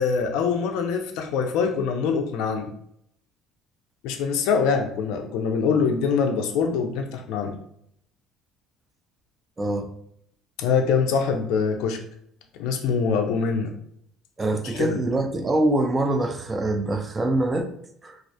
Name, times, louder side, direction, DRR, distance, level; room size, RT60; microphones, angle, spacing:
voice 1, 0.0-2.7 4.0-7.5 10.6-12.0 12.5-13.7 14.6-15.0, left 5 dB, 80° left, 4 dB, 0.3 m, -24 dB
voice 2, 9.6-9.9 14.4-17.7 18.0-18.2, right 2 dB, 20° right, 6 dB, 0.3 m, -24 dB
2.3 x 2.0 x 2.6 m, 0.71 s
cardioid pair, 140°, 0 cm